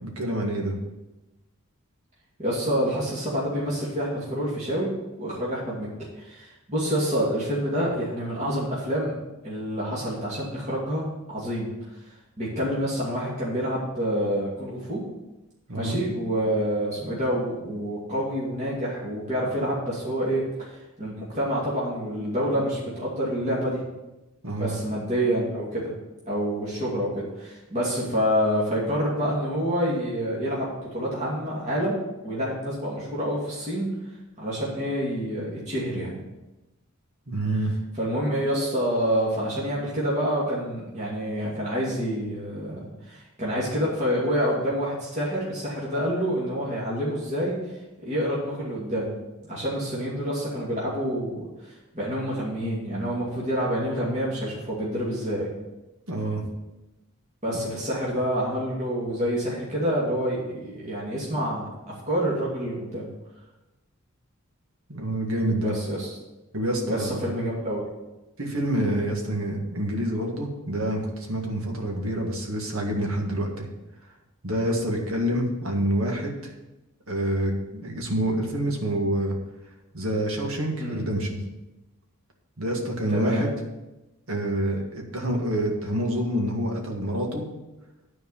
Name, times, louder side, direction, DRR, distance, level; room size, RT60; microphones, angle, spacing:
voice 1, 0.0-0.8 15.7-16.0 24.4-24.8 37.3-37.7 56.1-56.4 57.6-57.8 64.9-65.7 66.5-67.2 68.4-73.7 74.4-76.5 77.1-79.4 79.9-81.4 82.6-83.5 84.3-87.4, right 1 dB, 70° right, 1 dB, 1.9 m, -27 dB
voice 2, 2.4-4.9 5.2-5.9 6.2-9.1 9.4-11.7 12.4-15.0 15.8-20.4 20.7-23.8 24.6-25.9 26.3-33.9 34.4-36.2 37.9-47.6 48.0-49.1 49.4-51.4 51.6-55.5 57.4-61.7 62.1-63.1 65.6-66.1 66.9-67.8 80.8-81.0 83.1-83.5, equal, 30° right, -7 dB, 2.5 m, -27 dB
10.0 x 4.7 x 7.2 m, 1.0 s
head